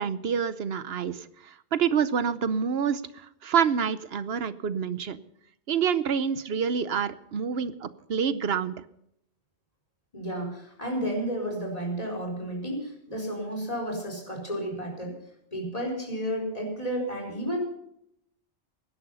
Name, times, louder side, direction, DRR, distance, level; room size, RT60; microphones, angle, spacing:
voice 1, 0.0-5.2 5.7-8.8, right 7 dB, 65° right, 14 dB, 1.0 m, -27 dB
voice 2, 10.1-15.2 15.5-17.6, equal, 35° left, 0 dB, 4.5 m, -32 dB
17.0 x 12.0 x 5.6 m, 0.76 s
omnidirectional pair, 1.1 m